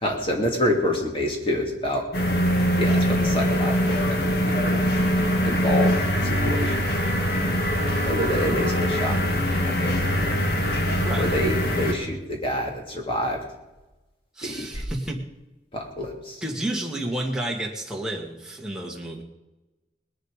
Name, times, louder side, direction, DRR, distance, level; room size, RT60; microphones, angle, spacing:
voice 1, 0.0-2.0 2.8-4.8 5.4-6.9 8.1-10.4 11.2-13.4 14.4-14.8 15.7-16.4, equal, 30° left, 1 dB, 2.8 m, -28 dB
sound 1, 2.1-11.9, equal, 60° left, 2.0 m, -23 dB
voice 2, 11.0-11.4 14.4-15.2 16.4-19.2, right 1 dB, 5° right, -1 dB, 1.9 m, -31 dB
20.0 x 11.0 x 5.1 m, 1.0 s
head